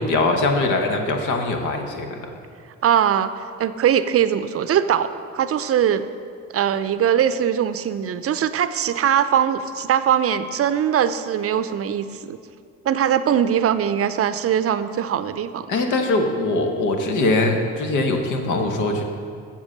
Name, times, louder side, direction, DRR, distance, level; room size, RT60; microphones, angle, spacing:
voice 1, 0.0-2.2 15.7-19.0, left 2 dB, 80° left, 4 dB, 1.2 m, -22 dB
voice 2, 2.8-3.3 3.6-6.0 6.5-12.4 12.8-15.7, right 9 dB, 50° right, 12 dB, 0.5 m, -21 dB
7.3 x 7.2 x 6.3 m, 2.3 s
cardioid pair, 90°, 30 cm